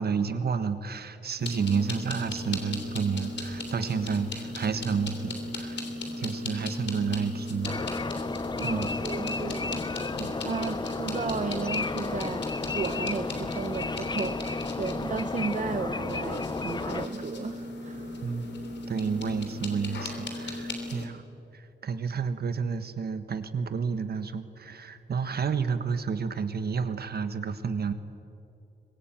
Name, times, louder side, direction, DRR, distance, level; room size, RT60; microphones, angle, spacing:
voice 1, 0.0-5.8 6.2-7.7 8.6-8.9 10.1-10.3 18.2-18.5 18.9-21.2 21.5-27.9, right 5 dB, 65° right, 10 dB, 1.4 m, -30 dB
sound 1, 1.4-21.1, left 2 dB, 80° left, 3.2 m, -37 dB
sound 2, 7.6-17.1, left 4 dB, 25° left, 0.5 m, -33 dB
voice 2, 8.6-12.5 12.7-18.2, right 5 dB, 45° right, 9 dB, 0.7 m, -34 dB
24.0 x 22.0 x 9.0 m, 2.8 s
wide cardioid pair, 175°, 18 cm